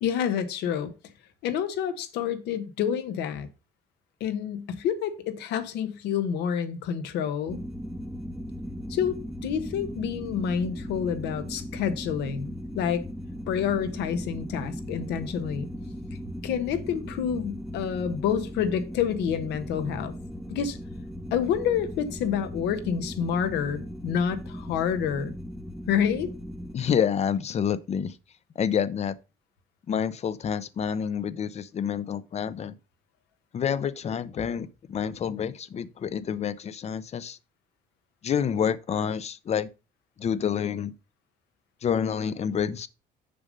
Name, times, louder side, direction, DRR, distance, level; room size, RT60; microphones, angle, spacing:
voice 1, 0.0-0.9 1.4-3.5 4.2-7.6 8.9-13.0 13.5-15.7 16.4-20.1 20.5-20.8 21.3-25.3 25.9-26.3, left 8 dB, 85° left, 1.2 m, -28 dB
sound 1, 7.5-26.7, equal, ahead, 0.7 m, -38 dB
voice 2, 26.7-28.2 28.6-29.2 29.9-32.7 33.5-37.4 38.2-39.7 40.2-40.9 41.8-42.9, left 8 dB, 40° left, 0.7 m, -28 dB
6.8 x 5.4 x 5.2 m
cardioid pair, 110°, 17 cm